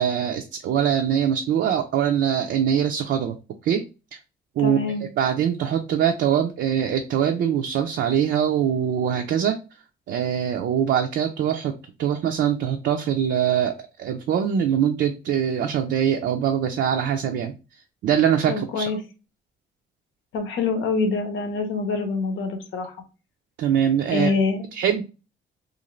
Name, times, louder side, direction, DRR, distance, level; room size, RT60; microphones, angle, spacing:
voice 1, 0.0-3.4 3.6-3.8 4.6-9.6 10.1-11.7 12.0-13.7 14.0-17.5 18.0-18.9 23.6-24.3 24.7-25.0, right 9 dB, 65° right, 4 dB, 0.4 m, -23 dB
voice 2, 4.6-5.1 18.5-19.0 20.3-23.0 24.1-24.6, left 4 dB, 80° left, 6 dB, 0.8 m, -25 dB
2.5 x 2.5 x 3.0 m, 0.31 s
cardioid pair, 90°, 20 cm